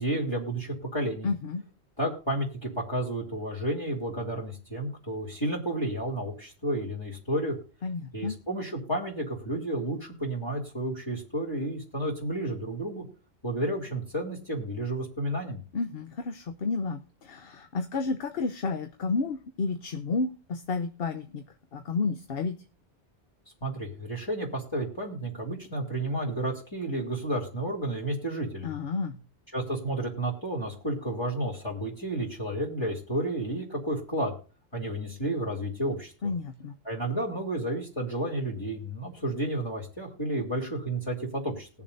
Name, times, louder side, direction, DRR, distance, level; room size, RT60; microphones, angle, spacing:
voice 1, 0.0-1.3 2.0-7.6 8.1-13.0 13.4-15.6 23.6-28.7 29.5-34.3 34.7-36.1 36.8-41.7, right 1 dB, 20° left, -3 dB, 2.9 m, -31 dB
voice 2, 1.2-1.6 7.8-8.4 15.7-21.4 21.7-22.6 28.6-29.2 36.2-36.7, left 4 dB, 60° left, 7 dB, 1.0 m, -31 dB
21.0 x 7.1 x 2.6 m, 0.37 s
omnidirectional pair, 1.2 m